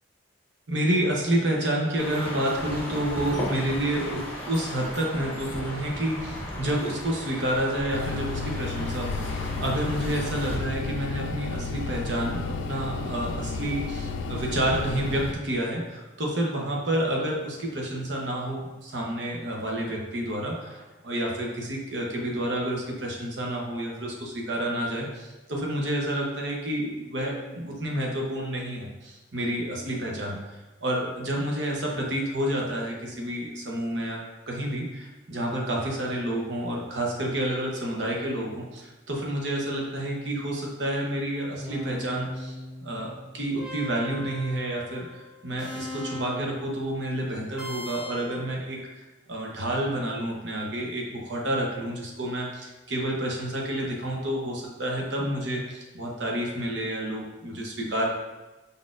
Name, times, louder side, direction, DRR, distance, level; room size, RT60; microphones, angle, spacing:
voice 1, 0.7-30.4 30.8-34.2 34.5-42.5 42.8-48.8 49.3-58.1, right 1 dB, 70° right, -1 dB, 0.9 m, -29 dB
sound 1, 2.0-10.6, left 1 dB, 10° left, 1.3 m, -36 dB
sound 2, 7.9-15.3, left 4 dB, 80° left, 0.4 m, -32 dB
sound 3, 40.3-40.9 41.6-46.6 47.6-48.4, left 2 dB, 5° right, 1.0 m, -40 dB
5.2 x 4.1 x 2.5 m, 1.1 s
head